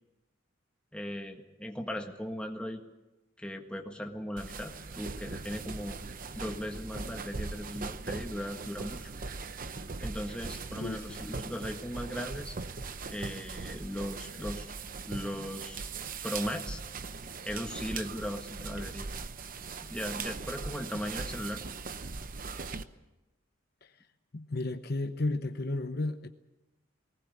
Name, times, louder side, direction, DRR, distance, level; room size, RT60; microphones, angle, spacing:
voice 1, 0.9-2.8 3.4-6.0 6.3-9.1 10.0-12.5 13.1-14.7 15.1-15.9 16.2-16.8 17.4-19.1 19.8-21.6, equal, 5° left, 3 dB, 1.6 m, -38 dB
sound 1, 4.4-22.8, right 4 dB, 40° right, 0.8 m, -40 dB
voice 2, 10.8-11.2 23.8-23.9 24.3-26.3, left 2 dB, 50° left, 8 dB, 0.9 m, -33 dB
19.5 x 18.5 x 8.5 m, 1.0 s
head